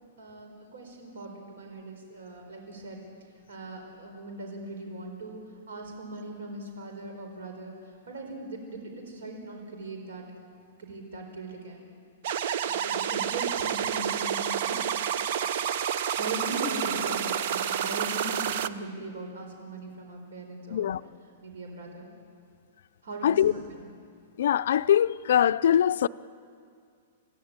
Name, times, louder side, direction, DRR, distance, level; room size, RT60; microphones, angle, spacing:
voice 1, 0.2-3.0 3.5-5.4 5.7-10.3 10.8-11.9 12.6-14.9 16.1-20.9 21.4-22.1 23.0-23.8, right 2 dB, 75° right, 4.6 m, -39 dB
sound 1, 12.2-18.7, right 9 dB, 45° right, 0.7 m, -29 dB
voice 2, 24.4-26.1, left 10 dB, 65° left, 0.5 m, -22 dB
25.5 x 15.5 x 8.9 m
hypercardioid pair, 170°, 0 cm